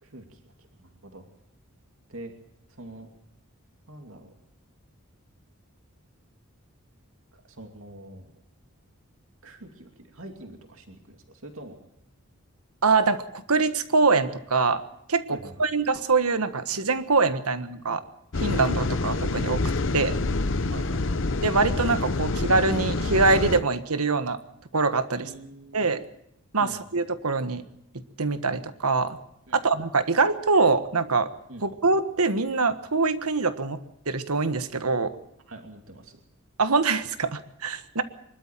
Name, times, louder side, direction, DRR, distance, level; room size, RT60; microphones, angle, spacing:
voice 1, 0.0-1.3 2.1-2.3 2.7-3.1 3.9-4.3 7.3-8.3 9.4-11.8 15.3-15.7 17.7-17.8 20.7-21.2 25.1-25.9 26.6-26.8 29.5-29.6 31.5-31.7 35.5-36.2, right 1 dB, 65° right, 4 dB, 2.7 m, -44 dB
voice 2, 12.8-14.8 15.1-18.0 18.4-19.6 19.9-20.1 21.4-24.4 24.7-25.3 25.7-26.0 26.5-27.6 28.2-29.2 29.6-31.3 31.6-33.8 34.1-35.1 36.6-38.0, right 4 dB, 85° right, 11 dB, 1.5 m, -24 dB
sound 1, 18.3-23.6, left 3 dB, 55° left, 0.8 m, -27 dB
24.0 x 13.0 x 9.1 m, 0.80 s
head